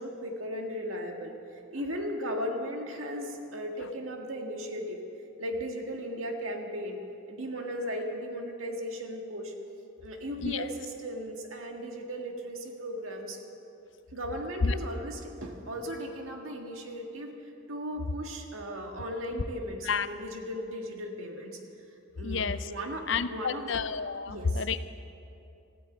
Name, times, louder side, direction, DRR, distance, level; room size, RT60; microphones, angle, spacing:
voice 1, 0.0-5.0 5.4-7.0 7.3-9.5 10.0-13.4 14.1-17.3 17.7-21.6 22.2-23.8 24.3-24.7, equal, 90° right, 2 dB, 1.8 m, -36 dB
voice 2, 22.2-22.6 23.1-24.8, left 5 dB, 65° left, 13 dB, 0.5 m, -29 dB
14.5 x 9.3 x 8.8 m, 2.7 s
head